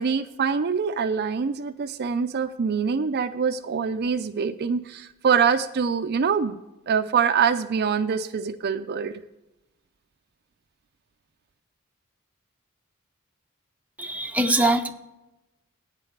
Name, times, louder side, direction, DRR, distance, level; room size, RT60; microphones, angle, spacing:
voice 1, 0.0-6.6 6.9-9.2, right 6 dB, 50° right, 9 dB, 0.5 m, -24 dB
voice 2, 14.0-14.9, right 2 dB, 5° right, 4 dB, 0.6 m, -22 dB
8.9 x 5.8 x 7.7 m, 0.97 s
head